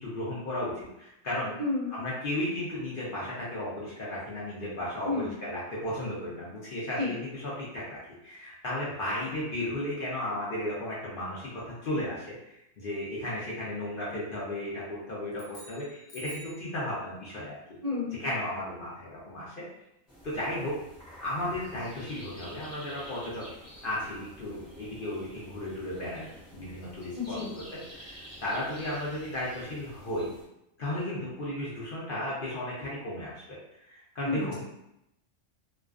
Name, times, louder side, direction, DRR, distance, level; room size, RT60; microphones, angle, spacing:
voice 1, 0.0-1.6 1.9-17.5 18.2-19.6 20.2-20.8 21.2-23.4 23.8-27.6 27.9-30.3 30.8-33.3 33.9-34.6, left 1 dB, 55° left, -7 dB, 0.6 m, -34 dB
voice 2, 1.6-1.9 5.1-5.3 7.0-7.1 17.8-18.2 27.1-27.5 34.2-34.6, left 3 dB, 50° right, -9 dB, 0.4 m, -31 dB
sound 1, 15.3-16.7, right 2 dB, 70° left, 1.0 m, -49 dB
sound 2, 20.1-30.4, equal, 25° left, 0.8 m, -49 dB
2.3 x 2.3 x 2.3 m, 0.84 s
omnidirectional pair, 1.4 m